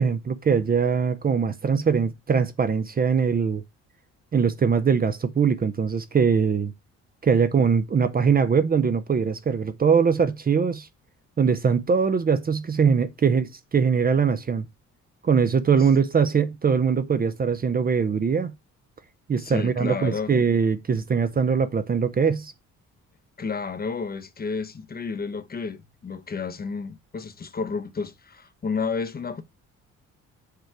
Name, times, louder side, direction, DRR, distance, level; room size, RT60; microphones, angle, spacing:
voice 1, 0.0-3.6 4.3-6.7 7.2-10.9 11.4-14.6 15.2-18.5 19.3-22.5, right 6 dB, 30° right, 0.6 m, -22 dB
voice 2, 19.4-20.3 23.4-29.4, left 5 dB, 30° left, 0.8 m, -31 dB
6.6 x 3.3 x 4.8 m
cardioid pair, 90°, 30 cm